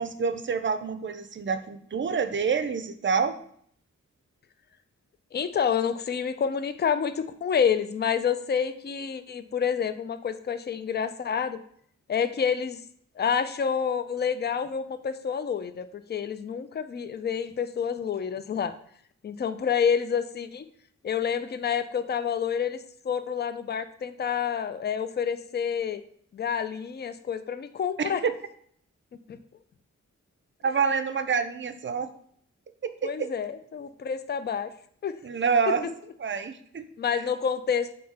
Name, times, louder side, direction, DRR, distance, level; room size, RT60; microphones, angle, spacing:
voice 1, 0.0-3.4 28.0-28.3 30.6-32.1 32.8-33.3 35.2-35.9 36.2-36.8, right 5 dB, 40° right, 10 dB, 0.5 m, -27 dB
voice 2, 5.3-11.6 12.1-12.8 13.2-18.8 19.2-20.7 21.0-26.0 26.3-28.2 29.3-29.4 33.0-34.7 35.0-35.2 35.7-35.8 37.0-37.9, left 7 dB, 35° left, 12 dB, 0.4 m, -28 dB
3.7 x 2.8 x 4.1 m, 0.62 s
cardioid pair, 45°, 31 cm